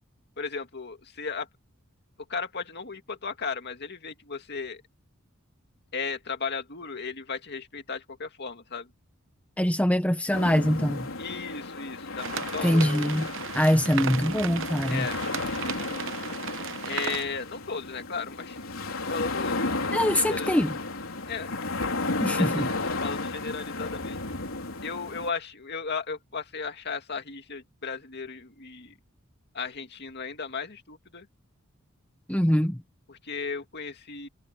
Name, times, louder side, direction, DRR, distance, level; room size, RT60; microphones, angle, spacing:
voice 1, 0.4-1.5 2.3-4.8 5.9-8.9 11.2-13.3 14.9-15.2 15.5-15.6 16.9-18.6 19.1-19.6 20.0-20.6 21.3-21.5 22.3-24.2 24.8-28.9 29.5-31.3 33.1-34.3, left 5 dB, 50° left, 2.4 m, -35 dB
voice 2, 9.6-11.1 12.6-13.3 13.5-15.1 19.9-20.7 22.2-22.7 32.3-32.8, equal, 5° left, 1.1 m, -23 dB
sound 1, 10.3-25.3, left 3 dB, 75° left, 4.2 m, -33 dB
sound 2, 12.2-17.2, right 7 dB, 65° right, 0.9 m, -36 dB
head